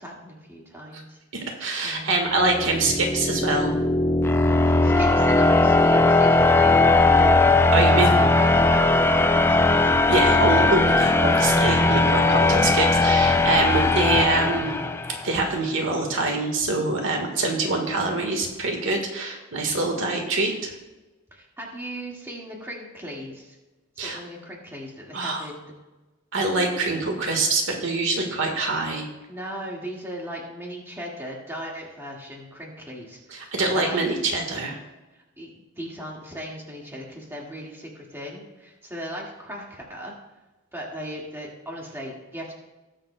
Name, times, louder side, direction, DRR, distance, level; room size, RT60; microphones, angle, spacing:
voice 1, 0.0-1.5 1.8-2.2 4.6-7.3 7.8-9.9 21.3-23.6 24.0-25.7 29.3-34.0 35.4-40.1 40.7-42.5, equal, 10° right, -3 dB, 1.8 m, -37 dB
voice 2, 1.6-3.7 7.7-8.1 10.1-14.8 15.2-20.7 24.0-24.2 25.1-25.4 26.3-29.1 33.3-34.8, right 2 dB, 65° right, 2 dB, 1.5 m, -24 dB
sound 1, 2.4-15.3, left 2 dB, 10° left, 0.4 m, -19 dB
19.0 x 7.4 x 2.2 m, 1.1 s
head